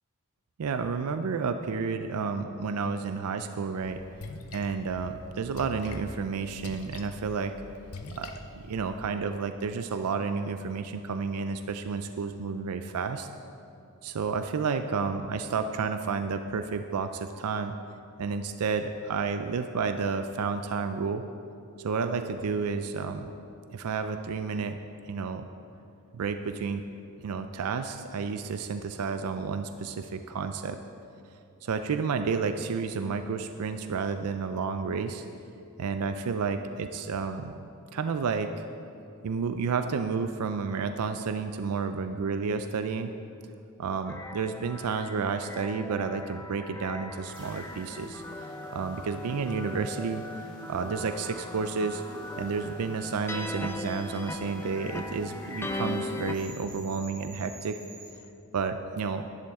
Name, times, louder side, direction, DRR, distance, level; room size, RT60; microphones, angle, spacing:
voice 1, 0.6-4.0 4.5-7.6 8.2-13.3 14.0-17.7 18.2-21.2 21.8-23.3 23.7-24.8 25.1-25.5 26.1-26.8 27.2-30.8 31.6-35.2 35.8-38.6 39.2-43.1 43.8-50.2 50.7-52.0 52.4-57.8 58.5-59.3, right 5 dB, 85° right, 8 dB, 0.4 m, -31 dB
Splash splatter, 3.8-9.1, left 2 dB, 85° left, 0.7 m, -44 dB
sound 1, 44.1-56.3, left 2 dB, 10° left, 0.4 m, -39 dB
sound 2, 47.3-58.1, right 1 dB, 25° right, 2.0 m, -49 dB
11.0 x 10.5 x 3.6 m, 2.6 s
head